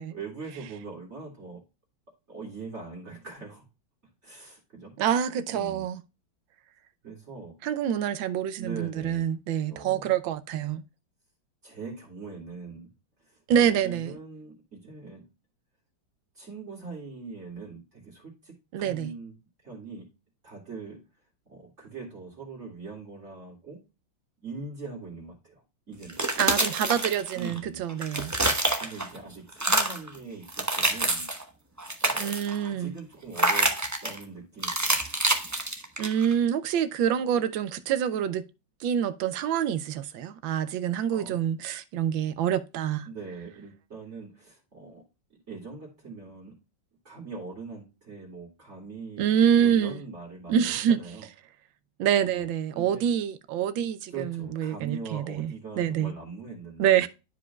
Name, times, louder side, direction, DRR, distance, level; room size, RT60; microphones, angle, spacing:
voice 1, 0.1-1.6 2.3-3.6 4.2-5.0 5.5-5.9 7.0-7.6 8.6-9.3 9.7-10.1 11.6-12.9 13.2-15.3 16.3-19.3 19.6-20.1 20.4-21.0 21.5-23.8 24.4-26.2 27.3-27.8 28.8-31.3 32.0-32.3 32.6-33.7 34.0-35.1 41.1-41.4 43.1-45.0 45.3-46.6 47.0-49.3 49.6-51.3 52.2-52.5 52.7-53.0 54.1-57.1, right 4 dB, 35° right, 2.6 m, -42 dB
voice 2, 5.0-6.0 7.6-10.8 13.5-14.1 18.7-19.1 26.4-28.3 32.2-32.9 36.0-38.4 38.8-43.1 49.2-50.0 50.5-51.0 52.0-56.1 56.8-57.1, right 9 dB, 85° right, 1.4 m, -26 dB
sound 1, 26.0-27.6 27.9-29.2 29.5-30.1 30.5-31.4 31.8-32.6 33.3-34.2 34.6-36.3, right 2 dB, 15° right, 0.5 m, -27 dB
12.0 x 5.0 x 2.3 m
omnidirectional pair, 2.1 m